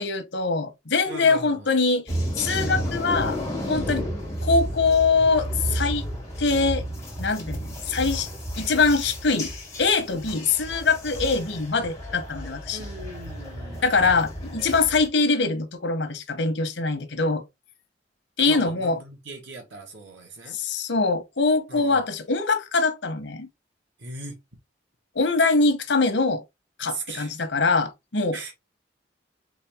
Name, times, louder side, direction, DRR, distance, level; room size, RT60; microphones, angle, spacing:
voice 1, 0.0-2.0 2.4-3.4 3.7-4.1 4.4-6.1 6.4-6.8 7.2-8.3 8.6-9.5 9.8-12.8 13.8-17.4 18.4-19.0 20.5-23.5 25.1-26.4 26.8-28.4, left 4 dB, 90° left, 1.0 m, -23 dB
voice 2, 1.1-1.7 12.7-14.2 18.4-20.6 21.7-22.1 24.0-24.4 26.9-27.3 28.3-28.5, right 2 dB, 80° right, 1.8 m, -39 dB
sound 1, 2.1-15.1, equal, 20° left, 1.9 m, -32 dB
4.1 x 3.4 x 3.4 m
head